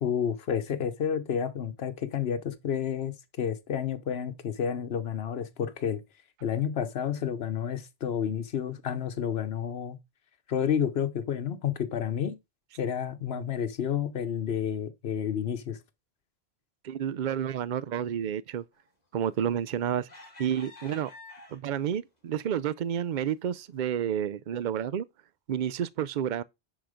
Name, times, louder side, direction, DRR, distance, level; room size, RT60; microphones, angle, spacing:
voice 1, 0.0-6.0 6.4-10.0 10.5-12.4 12.8-15.8, left 8 dB, 80° left, 1.1 m, -30 dB
voice 2, 16.8-18.6 19.1-20.1 20.4-21.1 21.5-25.1 25.5-26.4, right 9 dB, 55° right, 0.6 m, -30 dB
sound 1, 19.3-19.6 20.1-21.9 22.5-22.6 23.0-23.2, left 2 dB, 40° left, 2.3 m, -49 dB
10.5 x 4.0 x 5.0 m
omnidirectional pair, 1.0 m